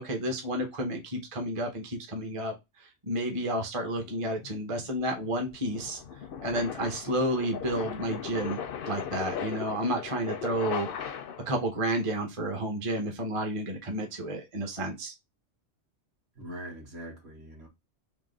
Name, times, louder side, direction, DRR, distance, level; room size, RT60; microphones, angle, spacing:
voice 1, 0.0-6.0 6.4-8.6 8.8-11.1 11.5-15.1, right 1 dB, 30° right, 0.8 m, -31 dB
sound 1, 4.0-11.6, left 8 dB, 60° left, 0.7 m, -38 dB
voice 2, 16.4-17.7, right 1 dB, 60° right, 1.7 m, -42 dB
3.9 x 2.8 x 3.8 m
omnidirectional pair, 1.3 m